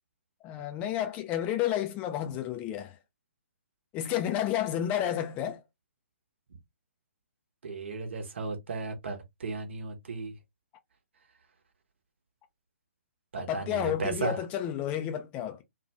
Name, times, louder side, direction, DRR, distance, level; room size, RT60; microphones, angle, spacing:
voice 1, 0.4-3.0 3.9-5.6 13.4-15.6, left 11 dB, 20° left, 0.3 m, -31 dB
voice 2, 7.6-10.4 13.3-14.4, right 3 dB, 60° right, 0.9 m, -35 dB
2.6 x 2.2 x 2.8 m
figure-of-eight pair, 130°, 7 cm